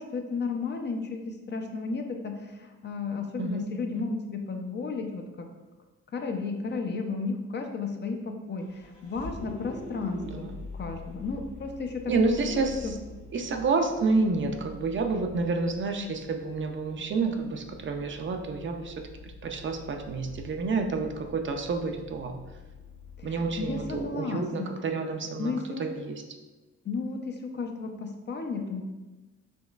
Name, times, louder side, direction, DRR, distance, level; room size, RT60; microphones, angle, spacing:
voice 1, 0.0-5.5 6.1-12.9 23.2-24.7 25.4-25.8 26.8-28.8, left 4 dB, 35° left, 4 dB, 0.5 m, -33 dB
Vehicle, 8.6-24.1, left 3 dB, 80° left, 1.3 m, -46 dB
voice 2, 12.1-13.0 13.3-22.4 23.2-25.5 25.8-26.2, right 4 dB, 40° right, 5 dB, 0.5 m, -29 dB
5.2 x 3.0 x 2.4 m, 1.1 s
cardioid pair, 90°, 30 cm